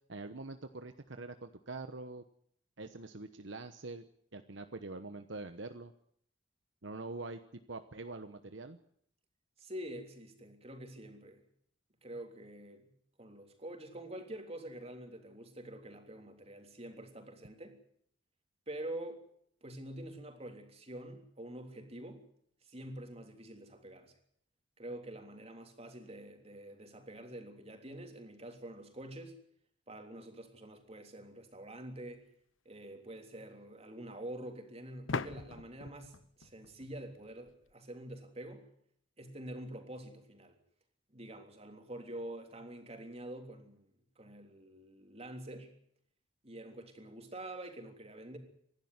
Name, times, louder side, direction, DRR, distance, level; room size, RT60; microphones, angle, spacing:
voice 1, 0.1-2.2 2.8-4.0 4.3-5.9 6.8-8.8, right 3 dB, 65° right, 9 dB, 1.1 m, -44 dB
voice 2, 9.6-11.4 12.0-12.9 13.2-17.8 18.7-19.2 19.6-22.2 22.6-24.1 24.8-29.4 29.9-32.2 32.7-38.7 39.2-40.6 41.1-43.9 44.2-45.7 46.4-48.4, right 1 dB, 30° right, 4 dB, 3.4 m, -46 dB
sound 1, 32.1-32.2 35.1-37.7, left 4 dB, 80° left, 0.9 m, -42 dB
25.5 x 12.0 x 9.7 m, 0.67 s
head